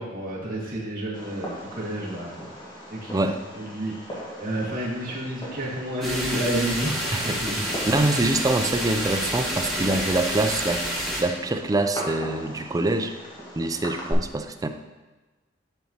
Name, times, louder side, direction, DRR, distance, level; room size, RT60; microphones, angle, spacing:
voice 1, 0.0-2.3 2.9-3.3 3.5-3.9 4.4-8.0, right 1 dB, 45° right, -6 dB, 2.2 m, -30 dB
Fireworks, 1.1-14.1, equal, 25° left, 1.5 m, -40 dB
sound 1, 6.0-11.2, equal, ahead, 1.6 m, -29 dB
voice 2, 7.1-10.9 11.2-13.1 13.6-14.7, right 2 dB, 20° right, 7 dB, 0.4 m, -25 dB
11.0 x 4.2 x 2.9 m, 1.2 s
head